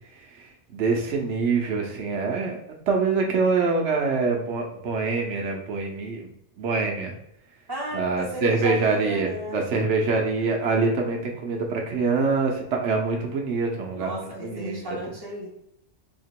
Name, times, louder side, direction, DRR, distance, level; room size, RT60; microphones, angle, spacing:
voice 1, 0.7-2.6 2.9-6.3 6.6-7.1 7.9-15.0, right 4 dB, 85° right, 1 dB, 1.0 m, -25 dB
voice 2, 7.7-9.6 13.9-15.5, equal, 20° right, -5 dB, 1.3 m, -34 dB
2.9 x 2.8 x 4.4 m, 0.76 s
omnidirectional pair, 1.2 m